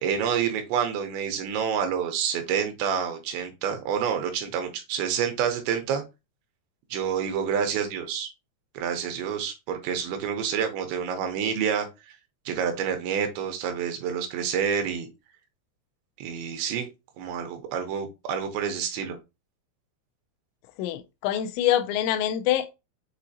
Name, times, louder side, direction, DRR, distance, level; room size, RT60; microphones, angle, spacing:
voice 1, 0.0-6.0 6.9-8.3 8.7-12.2 12.5-15.1 16.2-16.9 17.2-19.2, right 7 dB, 80° right, 3.0 m, -28 dB
voice 2, 20.8-22.7, left 12 dB, 85° left, 2.9 m, -25 dB
7.4 x 2.6 x 2.7 m
omnidirectional pair, 5.2 m